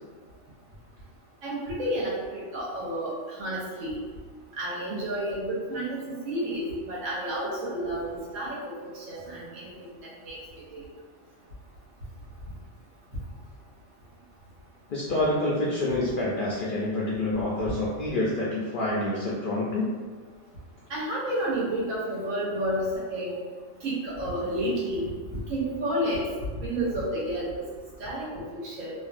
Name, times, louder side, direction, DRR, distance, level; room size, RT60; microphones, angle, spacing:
voice 1, 1.4-4.0 4.6-9.7 10.2-10.4 10.7-10.8 20.9-22.8 23.1-23.3 23.8-25.1 25.5-26.2 26.6-27.5 28.0-28.9, right 1 dB, 90° right, -6 dB, 1.3 m, -30 dB
voice 2, 14.9-19.9, left 2 dB, 60° left, -6 dB, 0.5 m, -27 dB
2.7 x 2.5 x 2.4 m, 1.5 s
omnidirectional pair, 1.3 m